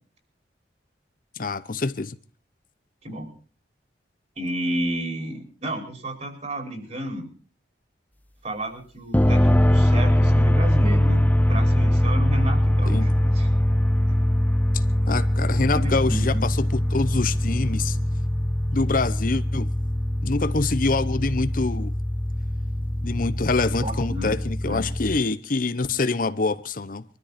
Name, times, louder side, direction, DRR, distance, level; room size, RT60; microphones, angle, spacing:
voice 1, 1.4-2.1 12.9-13.1 14.7-18.0 18.7-19.7 20.2-21.9 23.0-27.0, left 3 dB, 50° left, 0.8 m, -25 dB
voice 2, 4.4-7.3 8.4-11.2 11.5-13.5 14.1-14.2 15.8-16.5 23.8-24.3 24.7-24.8, right 1 dB, 40° right, 5.2 m, -32 dB
sound 1, 9.1-25.2, left 1 dB, 10° left, 0.7 m, -22 dB
23.5 x 13.5 x 4.2 m
head